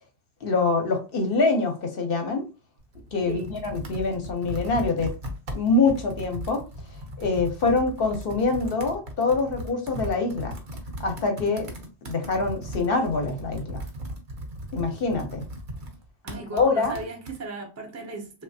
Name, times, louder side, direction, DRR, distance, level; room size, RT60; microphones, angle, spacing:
voice 1, 0.4-2.5 3.1-5.1 5.5-6.6 7.2-10.6 11.0-11.7 12.0-13.8 14.7-15.4 16.3-17.0, left 3 dB, 55° left, 0.9 m, -25 dB
Computer keyboard, 2.8-17.4, right 1 dB, 50° right, 0.8 m, -37 dB
voice 2, 16.2-18.4, right 3 dB, 15° right, 0.6 m, -36 dB
3.2 x 2.3 x 2.6 m
omnidirectional pair, 1.2 m